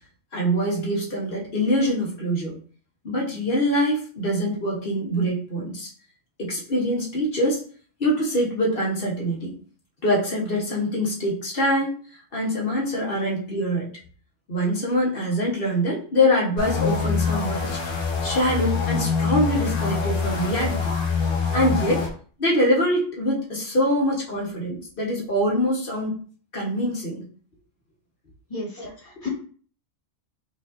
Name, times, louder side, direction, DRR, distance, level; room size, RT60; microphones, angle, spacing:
voice 1, 0.3-2.6 3.0-5.9 6.4-7.6 8.0-9.5 10.0-12.0 12.3-13.9 14.5-17.8 18.2-20.9 21.5-22.1 22.4-26.2 26.5-27.2 28.8-28.9, equal, 50° left, -3 dB, 1.3 m, -24 dB
sound 1, 16.6-22.1, left 5 dB, 85° left, 1.4 m, -25 dB
voice 2, 28.5-29.3, left 3 dB, 30° left, -5 dB, 1.6 m, -34 dB
4.9 x 2.6 x 2.5 m, 0.43 s
omnidirectional pair, 1.3 m